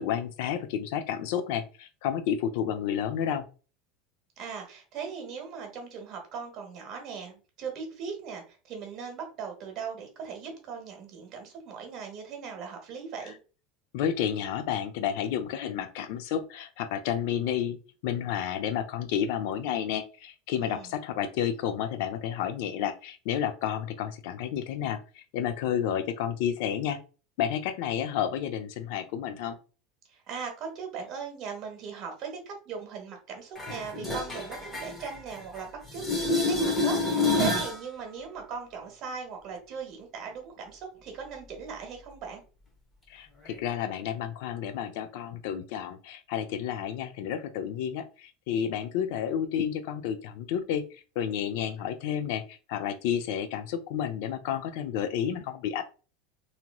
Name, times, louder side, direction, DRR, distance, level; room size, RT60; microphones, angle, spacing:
voice 1, 0.0-3.4 13.9-17.8 18.0-27.0 27.4-29.6 43.1-55.9, left 9 dB, 70° left, 8 dB, 0.5 m, -31 dB
voice 2, 4.4-13.4 20.6-20.9 30.1-42.4, right 6 dB, 45° right, 3 dB, 1.2 m, -39 dB
sound 1, 33.6-35.6 35.9-37.8 43.5-43.6, left 2 dB, 15° left, 1.0 m, -28 dB
3.0 x 2.8 x 2.2 m, 0.35 s
supercardioid pair, 130°, 0 cm